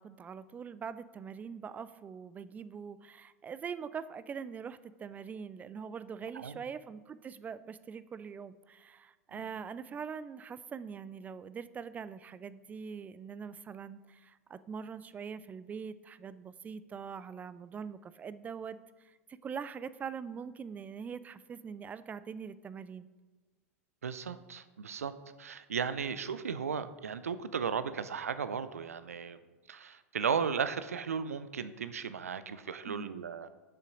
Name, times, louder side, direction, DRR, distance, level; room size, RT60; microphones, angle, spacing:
voice 1, 0.0-23.1 32.9-33.2, right 6 dB, 20° right, 15 dB, 0.3 m, -43 dB
voice 2, 24.0-25.1 25.4-29.4 29.7-33.5, right 6 dB, 80° right, 13 dB, 0.5 m, -35 dB
6.7 x 5.8 x 5.1 m, 1.4 s
figure-of-eight pair, 90°, 8 cm